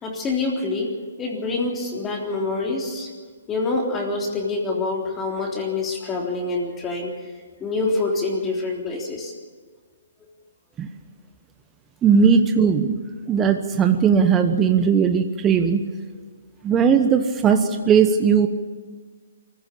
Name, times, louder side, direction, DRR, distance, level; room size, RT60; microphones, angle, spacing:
voice 1, 0.0-3.1 3.5-7.2 7.6-9.3, left 3 dB, 15° left, -1 dB, 3.5 m, -26 dB
voice 2, 12.0-13.0 13.3-15.8 16.6-18.5, right 6 dB, 20° right, 7 dB, 1.1 m, -18 dB
23.5 x 15.5 x 8.5 m, 1.5 s
hypercardioid pair, 135°, 0 cm